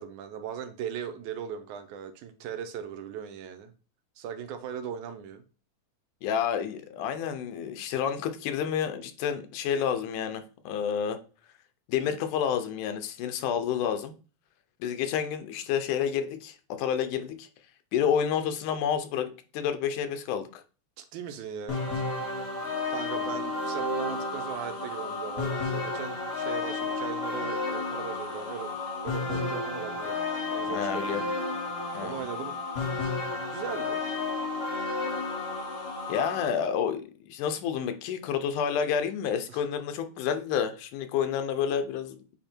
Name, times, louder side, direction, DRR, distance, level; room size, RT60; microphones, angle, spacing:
voice 1, 0.0-3.7 4.2-5.4 21.0-21.8 22.9-30.2 30.5-31.3 32.0-32.6 33.5-34.0 39.5-39.6, right 8 dB, 80° right, 2.1 m, -38 dB
voice 2, 6.2-11.2 11.9-14.1 14.8-17.5 17.9-20.6 30.7-31.2 31.9-32.2 36.1-42.2, left 8 dB, 85° left, 2.3 m, -29 dB
sound 1, 21.7-36.5, left 3 dB, 50° left, 1.0 m, -32 dB
8.6 x 2.9 x 4.4 m
omnidirectional pair, 3.5 m